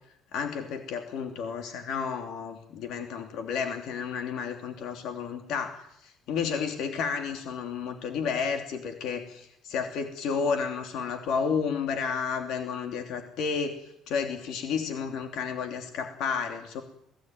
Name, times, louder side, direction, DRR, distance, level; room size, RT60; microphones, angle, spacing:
voice 1, 0.3-13.8 14.1-16.8, left 6 dB, 65° left, 4 dB, 3.0 m, -31 dB
24.0 x 17.5 x 9.4 m, 0.76 s
cardioid pair, 155°, 0 cm